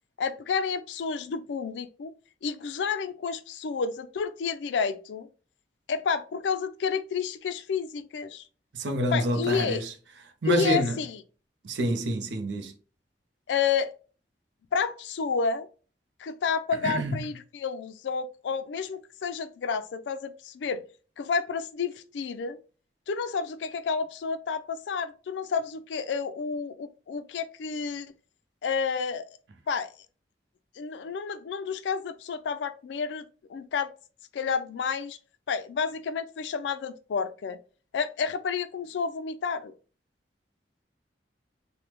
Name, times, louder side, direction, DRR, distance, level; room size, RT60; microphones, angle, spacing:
voice 1, 0.2-2.1 2.4-5.3 5.9-8.4 9.1-9.8 10.4-11.2 13.5-13.9 14.7-15.7 16.2-20.8 21.2-22.6 23.1-28.1 28.6-29.2 29.7-29.9 30.8-33.9 34.3-35.2 35.5-37.6 37.9-39.7, left 6 dB, 80° left, 0.4 m, -30 dB
voice 2, 8.7-9.9 10.4-11.0 11.6-12.7 16.8-17.2, right 1 dB, 90° right, 0.6 m, -27 dB
3.3 x 2.1 x 2.9 m
head